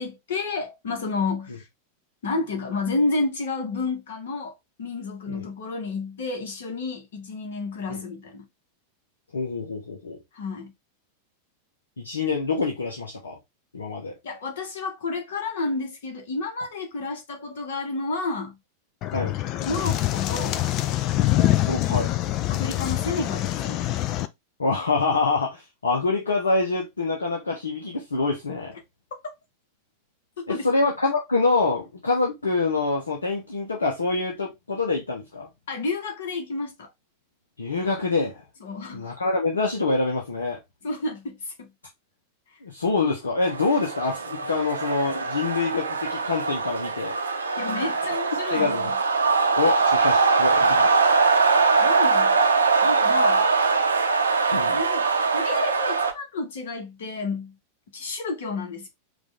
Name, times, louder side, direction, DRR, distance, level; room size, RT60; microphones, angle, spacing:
voice 1, 0.0-1.6 2.2-4.5 4.8-8.4 10.3-10.7 14.2-18.6 19.6-20.6 22.5-23.8 30.4-30.7 35.7-36.9 38.6-39.1 40.8-41.7 47.6-48.7 51.8-52.4 52.8-53.5 54.7-55.0 55.3-57.5 57.9-58.9, left 3 dB, 60° left, 1.6 m, -30 dB
voice 2, 9.3-10.2 12.0-13.4 13.7-14.1 19.1-19.3 21.6-22.1 24.6-28.8 30.5-35.5 37.6-38.4 38.9-40.6 42.6-47.1 48.5-48.9 49.6-50.9 54.5-54.8, left 3 dB, 75° left, 1.0 m, -25 dB
sound 1, 19.0-24.3, left 14 dB, 40° left, 0.5 m, -25 dB
sound 2, 43.4-56.1, right 4 dB, 75° right, 0.7 m, -22 dB
5.0 x 2.7 x 3.5 m
figure-of-eight pair, 90°, 0 cm